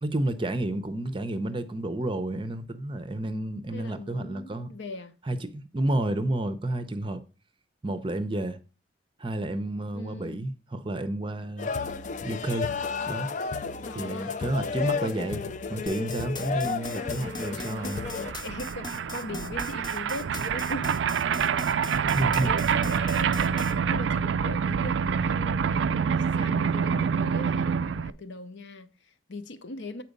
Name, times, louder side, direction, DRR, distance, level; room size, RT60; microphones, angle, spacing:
voice 1, 0.0-4.7 5.3-7.2 7.8-8.6 9.2-11.7 12.2-12.8 13.1-13.3 13.9-18.0 22.1-22.5, right 1 dB, 25° right, 0.6 m, -30 dB
voice 2, 3.7-5.2 9.9-10.4 13.9-14.4 17.3-21.0 21.6-21.7 22.1-30.0, left 2 dB, 65° left, 0.7 m, -40 dB
sound 1, 11.6-18.3, left 5 dB, 40° left, 0.4 m, -32 dB
sound 2, 15.9-23.7, left 3 dB, 20° left, 0.8 m, -40 dB
sound 3, 17.0-17.1 17.2-28.1, right 6 dB, 70° right, 0.3 m, -27 dB
8.1 x 4.5 x 5.2 m
head